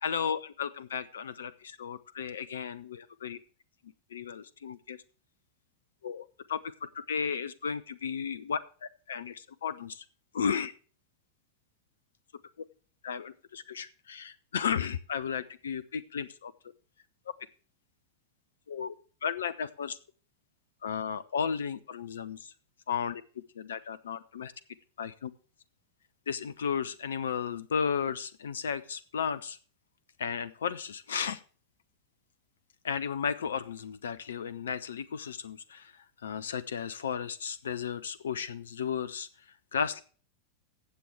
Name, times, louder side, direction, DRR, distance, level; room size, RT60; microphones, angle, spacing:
voice 1, 0.0-3.4 4.1-5.0 6.0-10.0 10.3-10.7 13.0-16.5 18.7-18.9 19.2-20.0 20.8-22.5 22.9-23.2 23.6-24.5 25.0-25.3 26.3-29.6 30.2-31.4 32.8-39.3 39.7-40.0, left 7 dB, 65° left, 17 dB, 0.5 m, -34 dB
15.0 x 7.7 x 3.4 m, 0.40 s
figure-of-eight pair, 90°, 0 cm